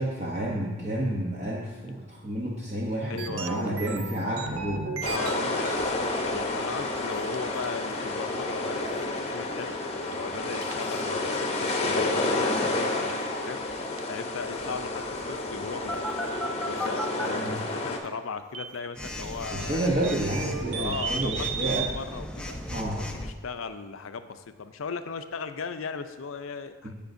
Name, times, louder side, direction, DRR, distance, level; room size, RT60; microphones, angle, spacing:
voice 1, 0.0-4.8 17.3-17.6 19.5-21.9 22.7-23.0 26.8-26.9, right 1 dB, 35° right, -4 dB, 0.9 m, -30 dB
voice 2, 3.0-3.7 5.1-13.6 14.1-16.1 16.7-19.9 20.8-21.5 21.8-22.6 23.0-26.9, left 5 dB, 80° left, 9 dB, 0.5 m, -37 dB
sound 1, 3.2-6.2 6.9-7.0 7.3-7.4 7.6-7.7 9.7-9.8 10.1-10.2 10.6-10.7 11.5-11.6 12.7-12.8 13.0-13.1 13.6-13.7 14.0-14.1 16.9-17.5 18.5-18.9 20.0-21.9, right 6 dB, 85° right, 0.6 m, -35 dB
sound 2, 5.0-18.0, left 2 dB, 30° left, 0.8 m, -30 dB
Telephone, 15.9-17.3 19.0-23.3, left 1 dB, 5° left, 0.4 m, -35 dB
15.0 x 5.2 x 2.6 m, 1.3 s
head